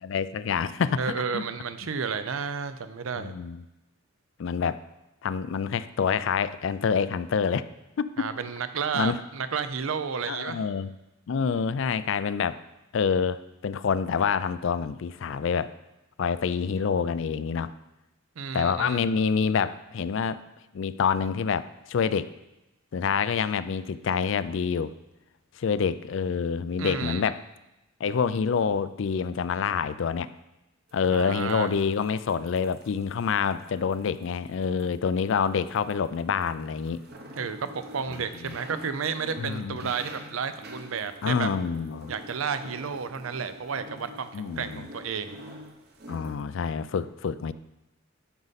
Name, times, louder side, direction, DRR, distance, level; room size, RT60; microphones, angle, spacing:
voice 1, 0.0-1.4 3.2-3.6 4.4-4.8 5.2-7.7 8.0-8.3 8.9-9.2 10.3-10.9 11.3-12.6 12.9-15.7 16.2-17.7 18.5-20.4 20.7-22.3 22.9-24.9 25.6-27.4 28.0-30.3 30.9-37.0 38.4-38.5 39.4-39.9 41.2-42.1 44.3-44.9 46.1-47.5, left 6 dB, 65° left, 15 dB, 0.4 m, -27 dB
voice 2, 1.0-3.3 8.2-10.6 18.4-19.0 26.8-27.3 31.1-31.7 37.3-41.5 42.1-45.4, right 6 dB, 80° right, 11 dB, 0.6 m, -32 dB
sound 1, 30.9-46.4, equal, 50° right, 1.0 m, -46 dB
12.5 x 5.3 x 4.1 m, 0.95 s
head